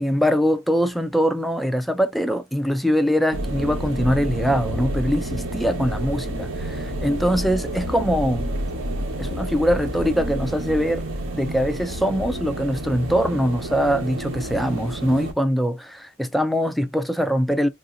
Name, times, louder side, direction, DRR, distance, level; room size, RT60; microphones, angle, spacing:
voice 1, 0.0-8.5 9.2-11.0 11.3-17.7, equal, ahead, 0.4 m, -22 dB
sound 1, 3.3-15.3, right 1 dB, 70° right, 1.0 m, -29 dB
3.5 x 2.6 x 2.5 m
head